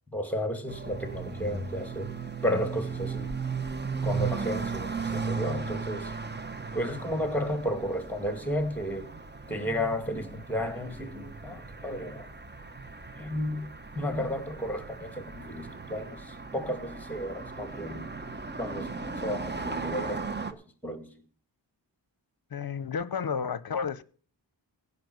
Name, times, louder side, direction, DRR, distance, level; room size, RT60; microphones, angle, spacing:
voice 1, 0.1-2.2 2.4-3.3 4.0-6.1 6.7-9.1 9.5-12.3 13.2-13.7 13.9-18.1 18.6-20.3 20.8-21.1, left 1 dB, 5° left, 2.2 m, -33 dB
sound 1, 0.7-20.5, right 5 dB, 25° right, 0.9 m, -37 dB
voice 2, 22.5-24.0, left 6 dB, 50° left, 0.8 m, -31 dB
16.0 x 5.5 x 7.9 m
wide cardioid pair, 90°, 45 cm